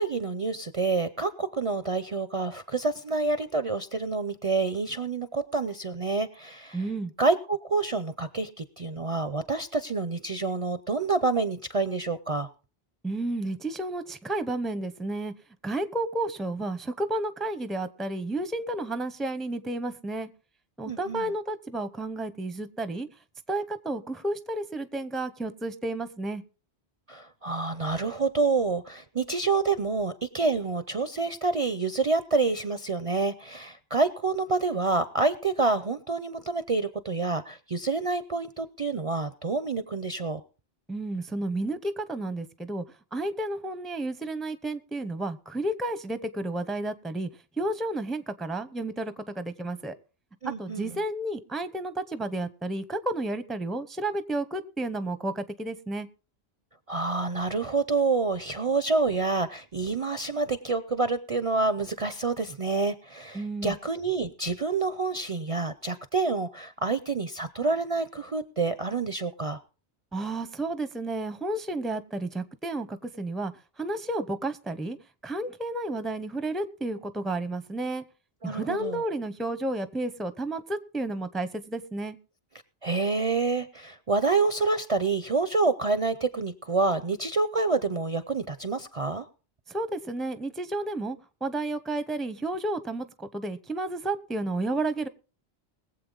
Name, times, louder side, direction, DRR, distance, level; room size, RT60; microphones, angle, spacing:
voice 1, 0.0-6.8 7.2-12.5 20.9-21.3 27.1-40.4 50.4-50.9 56.9-69.6 78.4-79.0 82.8-89.3, right 3 dB, 40° right, 11 dB, 0.6 m, -28 dB
voice 2, 6.7-7.1 13.0-15.3 15.6-20.3 20.8-23.1 23.5-26.4 40.9-42.8 43.1-47.3 47.6-49.9 50.6-56.1 63.3-63.8 70.1-73.5 73.8-75.0 75.2-78.0 78.4-82.2 89.7-95.1, right 2 dB, ahead, 12 dB, 0.6 m, -31 dB
21.5 x 7.8 x 3.8 m, 0.35 s
omnidirectional pair, 1.1 m